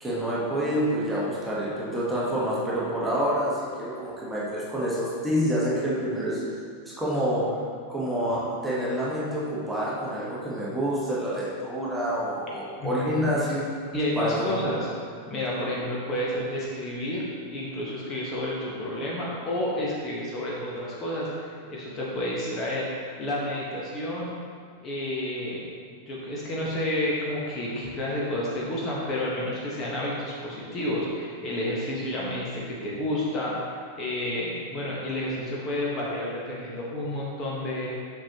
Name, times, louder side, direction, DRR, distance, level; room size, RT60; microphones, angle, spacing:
voice 1, 0.0-6.5 6.9-7.6 7.9-13.6 14.2-14.5, equal, 5° right, -7 dB, 1.6 m, -27 dB
voice 2, 12.8-13.3 13.9-14.9 15.3-17.2 17.5-22.9 23.2-24.3 24.8-37.9, left 1 dB, 25° left, -6 dB, 1.5 m, -30 dB
7.2 x 6.1 x 3.0 m, 2.2 s
figure-of-eight pair, 90°, 0 cm